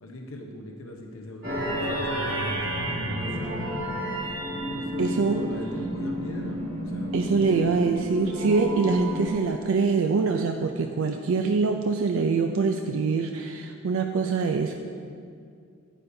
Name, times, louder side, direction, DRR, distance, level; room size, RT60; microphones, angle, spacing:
voice 1, 0.0-3.8 4.6-7.7, left 1 dB, 85° left, 1 dB, 0.8 m, -40 dB
sound 1, 1.4-9.3, equal, 40° right, 2.2 m, -30 dB
voice 2, 5.0-5.4 7.1-14.7, right 4 dB, 75° right, 4 dB, 0.4 m, -24 dB
9.8 x 8.4 x 2.7 m, 2.3 s
head